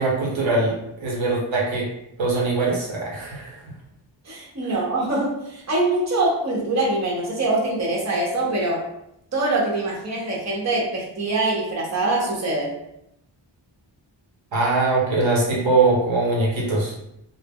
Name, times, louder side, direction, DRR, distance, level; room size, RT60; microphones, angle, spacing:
voice 1, 0.0-1.9 2.2-3.6 4.6-4.7 14.5-16.9, right 3 dB, 80° right, -3 dB, 0.8 m, -22 dB
voice 2, 4.2-8.8 9.3-12.7, right 2 dB, 35° right, -3 dB, 0.8 m, -24 dB
2.0 x 2.0 x 3.4 m, 0.81 s
wide cardioid pair, 60°, 46 cm